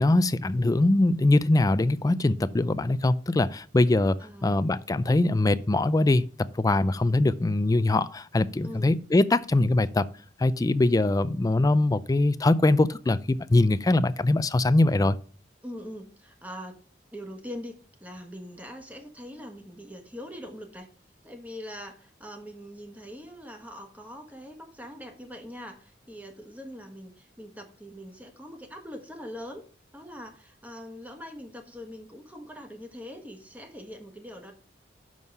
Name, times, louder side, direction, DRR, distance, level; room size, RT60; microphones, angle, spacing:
voice 1, 0.0-10.1 10.4-15.2, left 2 dB, 20° left, 0.4 m, -22 dB
voice 2, 4.2-4.5 8.6-8.9 15.6-16.7 17.1-20.9 21.2-29.6 29.9-34.5, equal, 10° right, 1.4 m, -42 dB
6.2 x 5.5 x 5.3 m
head